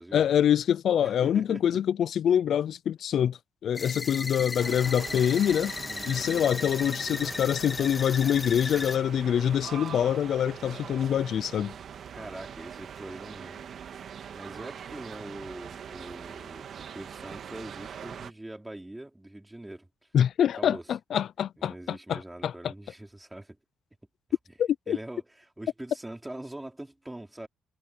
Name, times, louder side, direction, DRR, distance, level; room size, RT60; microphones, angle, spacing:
voice 1, 0.1-5.7 6.1-11.7 20.1-22.7 24.6-25.0, left 9 dB, 65° left, 0.5 m, -25 dB
voice 2, 1.0-1.8 4.2-4.4 5.9-6.7 7.0-7.4 12.1-13.7 14.3-19.9 20.6-20.8 21.6-23.6 24.9-27.5, right 1 dB, 10° right, 4.9 m, -43 dB
sound 1, 3.7-9.0, left 4 dB, 30° left, 1.9 m, -35 dB
sound 2, 4.6-18.3, right 8 dB, 60° right, 1.8 m, -42 dB
cardioid pair, 90°, 0 cm